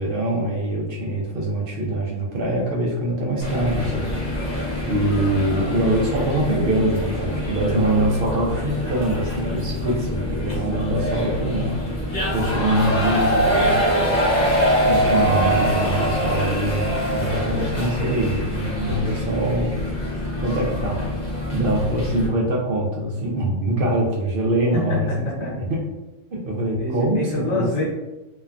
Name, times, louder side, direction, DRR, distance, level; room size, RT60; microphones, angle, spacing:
voice 1, 0.0-4.1 4.9-11.8 12.3-13.8 14.8-20.0 20.4-25.8 26.3-27.2 27.5-27.7, right 1 dB, 55° right, -3 dB, 0.6 m, -24 dB
sound 1, 3.4-22.3, equal, 45° left, 0.9 m, -24 dB
voice 2, 24.7-25.5 26.8-27.8, left 2 dB, 75° left, -5 dB, 1.4 m, -26 dB
3.2 x 2.1 x 2.4 m, 1.0 s
omnidirectional pair, 1.3 m